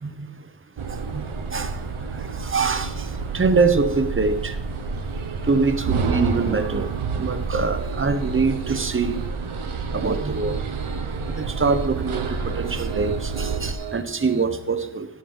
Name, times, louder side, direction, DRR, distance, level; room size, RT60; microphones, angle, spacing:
sound 1, 0.8-13.8, right 5 dB, 90° right, 1.1 m, -29 dB
voice 1, 2.2-2.9 3.3-4.5 5.5-6.9 7.2-9.2 9.9-10.6 11.4-15.1, right 4 dB, 25° right, 0.8 m, -23 dB
Piano, 7.6-14.4, right 8 dB, 65° right, 0.9 m, -38 dB
11.5 x 10.0 x 3.7 m
wide cardioid pair, 110°, 47 cm